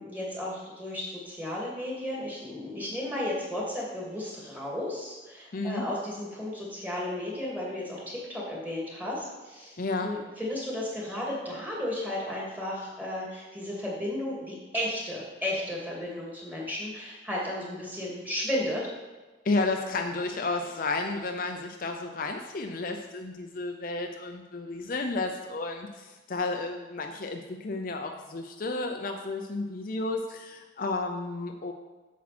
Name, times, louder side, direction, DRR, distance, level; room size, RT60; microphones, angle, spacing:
voice 1, 0.0-18.8, left 1 dB, 10° right, -5 dB, 2.4 m, -34 dB
voice 2, 5.5-5.9 9.8-10.1 19.4-31.7, left 3 dB, 45° left, 4 dB, 0.6 m, -32 dB
8.6 x 7.2 x 4.3 m, 1.2 s
head